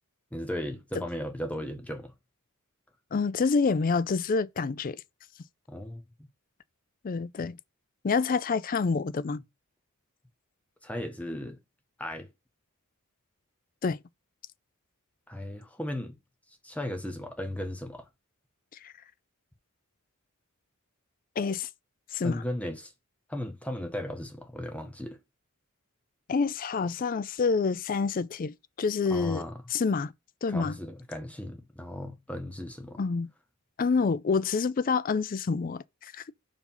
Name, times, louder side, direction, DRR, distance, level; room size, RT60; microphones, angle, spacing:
voice 1, 0.3-2.1 5.7-6.0 10.8-11.6 12.0-12.3 15.3-16.2 16.6-18.1 22.2-22.9 23.3-25.2 29.1-29.5 30.5-33.0, left 1 dB, 5° left, 0.7 m, -36 dB
voice 2, 3.1-5.0 7.0-7.6 8.0-9.4 13.8-14.0 18.8-18.9 21.4-21.7 22.1-22.4 26.3-29.4 29.7-30.1 30.4-30.8 33.0-33.3 33.8-36.3, left 4 dB, 40° left, 0.4 m, -27 dB
5.3 x 4.8 x 5.5 m
head